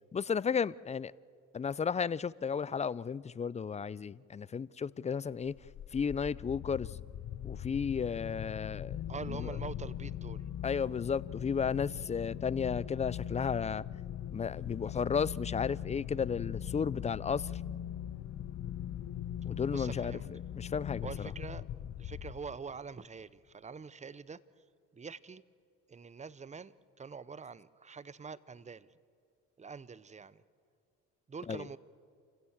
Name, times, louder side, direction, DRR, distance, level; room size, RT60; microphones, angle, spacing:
voice 1, 0.1-1.1 1.5-5.5 5.9-6.9 7.4-9.0 9.3-9.5 10.6-13.8 14.3-17.6 19.5-20.1 20.5-21.1 31.5-31.6, left 6 dB, 20° left, 0.4 m, -33 dB
sound 1, 5.4-22.8, left 10 dB, 55° left, 0.9 m, -40 dB
voice 2, 9.1-10.5 18.6-18.7 19.7-20.3 21.0-21.7 22.0-24.4 24.9-25.4 25.9-28.9 29.6-30.4 31.3-31.8, right 5 dB, 20° right, 0.8 m, -45 dB
28.0 x 16.0 x 7.3 m
supercardioid pair, 70°, 33 cm